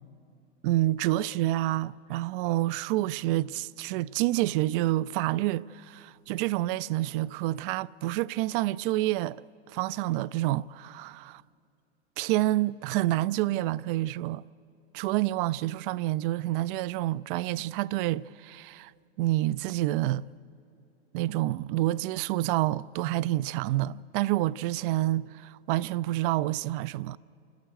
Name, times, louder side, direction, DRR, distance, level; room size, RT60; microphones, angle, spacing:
voice 1, 0.6-9.4 9.7-11.4 12.2-14.4 14.9-18.9 19.2-20.2 21.1-27.2, right 16 dB, 50° right, 0.4 m, -28 dB
28.0 x 13.0 x 8.0 m
hypercardioid pair, 120°, 34 cm